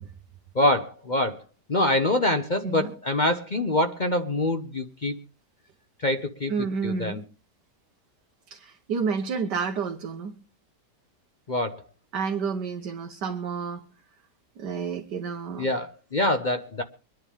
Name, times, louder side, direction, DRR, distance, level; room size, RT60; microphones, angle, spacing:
voice 1, 0.5-1.4 1.7-5.1 6.0-6.5 6.8-7.2 11.5-11.8 15.6-16.8, left 1 dB, 40° left, 7 dB, 0.7 m, -25 dB
voice 2, 6.5-7.2 8.5-10.4 12.1-13.9 14.6-15.7, right 5 dB, 90° right, 3 dB, 1.7 m, -30 dB
24.5 x 10.5 x 3.6 m, 0.36 s
omnidirectional pair, 1.8 m